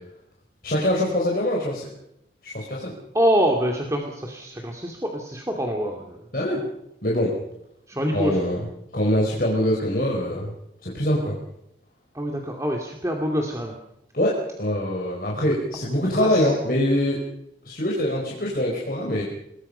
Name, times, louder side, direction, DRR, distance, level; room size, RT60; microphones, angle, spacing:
voice 1, 0.6-1.9 2.4-2.9 6.3-6.6 7.0-7.4 8.1-8.6 8.9-10.5 10.8-11.4 14.1-17.2 17.6-19.2, left 1 dB, 50° left, -2 dB, 4.8 m, -24 dB
voice 2, 3.1-6.2 7.9-8.4 12.1-13.8 16.2-16.5, equal, 15° right, 1 dB, 2.5 m, -25 dB
27.0 x 21.0 x 5.7 m, 0.82 s
head